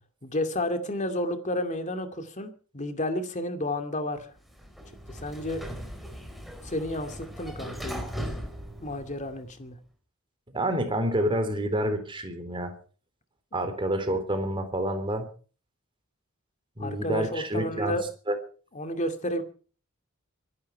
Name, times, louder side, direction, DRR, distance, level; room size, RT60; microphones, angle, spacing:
voice 1, 0.2-4.3 5.1-5.6 6.6-8.1 8.8-9.8 13.5-13.6 16.8-18.0 18.7-19.4, left 1 dB, 35° left, 7 dB, 2.5 m, -31 dB
Sliding door, 4.4-9.6, equal, ahead, 4.2 m, -39 dB
voice 2, 10.5-12.7 13.5-15.3 16.8-18.0 18.3-18.4, right 1 dB, 25° right, 7 dB, 3.6 m, -28 dB
24.0 x 11.5 x 4.7 m, 0.41 s
head